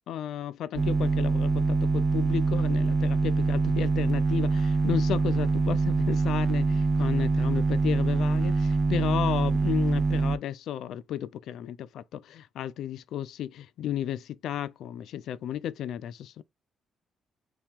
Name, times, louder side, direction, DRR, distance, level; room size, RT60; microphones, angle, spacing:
voice 1, 0.1-16.4, left 11 dB, 75° left, 0.3 m, -33 dB
sound 1, 0.7-10.4, right 3 dB, 40° right, 0.5 m, -24 dB
2.9 x 2.8 x 3.5 m
cardioid pair, 90°, 0 cm